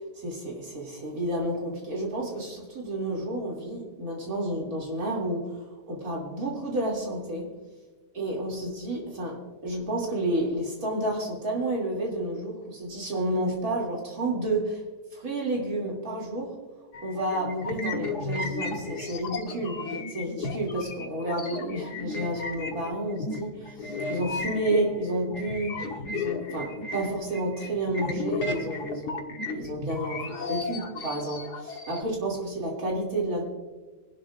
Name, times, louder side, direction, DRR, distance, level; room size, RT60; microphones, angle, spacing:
voice 1, 0.2-5.6 5.9-7.5 8.1-14.8 15.1-16.5 17.0-19.8 20.1-25.8 26.1-30.2 30.5-33.4, right 1 dB, 55° right, -2 dB, 3.3 m, -30 dB
sound 1, 16.9-32.0, left 3 dB, 65° left, 1.8 m, -34 dB
23.5 x 12.0 x 2.5 m, 1.2 s
omnidirectional pair, 1.9 m